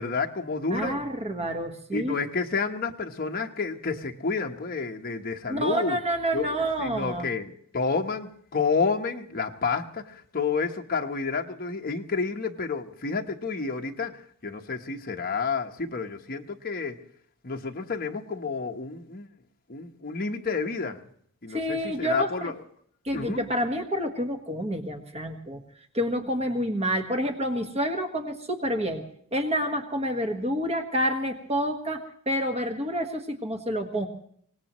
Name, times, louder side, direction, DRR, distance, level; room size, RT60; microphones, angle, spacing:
voice 1, 0.0-1.1 1.9-6.0 6.3-17.0 17.4-19.3 19.7-21.0 21.4-22.5 23.1-23.5, left 4 dB, 45° left, 3 dB, 1.1 m, -30 dB
voice 2, 0.7-2.2 5.5-7.3 21.5-22.5 23.0-25.6 25.9-29.0 29.3-34.1, equal, 30° right, 5 dB, 1.5 m, -28 dB
24.5 x 18.5 x 3.1 m, 0.64 s
head